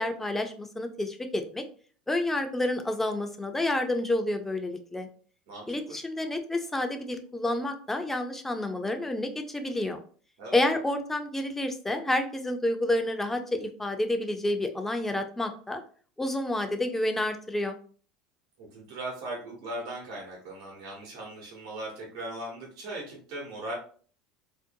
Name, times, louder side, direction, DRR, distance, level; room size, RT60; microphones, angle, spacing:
voice 1, 0.0-1.6 2.1-5.1 5.7-10.0 10.5-15.8 16.2-17.8, left 1 dB, 10° left, 6 dB, 0.4 m, -29 dB
voice 2, 5.5-6.0 10.4-10.6 18.6-23.7, right 1 dB, 75° right, -2 dB, 1.0 m, -39 dB
2.5 x 2.1 x 2.6 m, 0.43 s
supercardioid pair, 100°, 3 cm